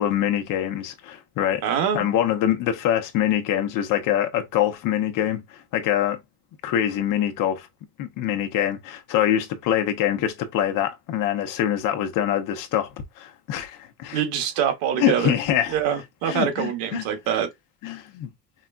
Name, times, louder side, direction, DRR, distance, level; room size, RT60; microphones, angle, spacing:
voice 1, 0.0-1.6 1.9-6.2 6.6-7.7 8.0-14.2 14.9-15.8 16.2-17.1 17.8-18.3, left 11 dB, 65° left, 0.9 m, -24 dB
voice 2, 1.6-2.1 14.1-15.3 15.7-17.5, right 9 dB, 85° right, 1.4 m, -24 dB
4.9 x 2.2 x 2.5 m
cardioid pair, 115°, 35 cm